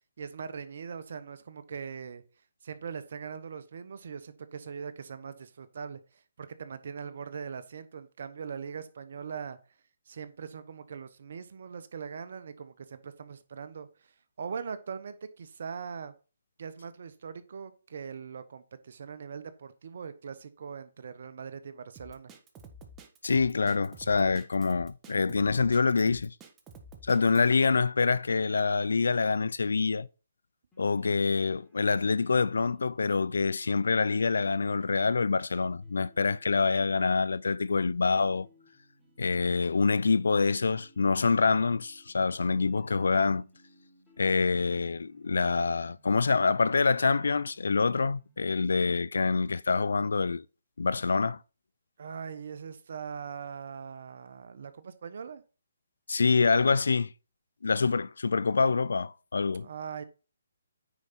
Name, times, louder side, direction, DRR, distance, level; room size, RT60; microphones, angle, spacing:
voice 1, 0.2-2.2 2.6-9.6 10.1-16.1 16.6-22.3 52.0-55.4 59.6-60.0, right 6 dB, 60° right, 1.1 m, -41 dB
Drum kit, 22.0-27.5, right 2 dB, 15° right, 1.3 m, -50 dB
voice 2, 23.2-26.3 27.0-30.1 30.8-38.5 39.2-43.5 44.2-50.5 50.8-51.4 56.1-57.1 57.6-59.7, left 4 dB, 75° left, 0.4 m, -26 dB
sound 1, 30.7-49.0, left 1 dB, 10° left, 3.5 m, -64 dB
9.5 x 5.1 x 4.3 m
figure-of-eight pair, 145°, 0 cm